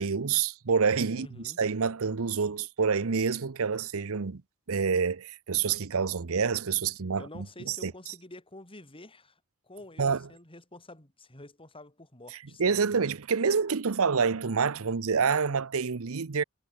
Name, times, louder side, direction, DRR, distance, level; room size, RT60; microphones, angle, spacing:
voice 1, 0.0-4.4 4.7-7.9 10.0-10.3 12.6-16.4, right 5 dB, 65° right, 0.8 m, -27 dB
voice 2, 1.1-1.6 7.2-12.9, left 1 dB, 25° left, 6.1 m, -49 dB
head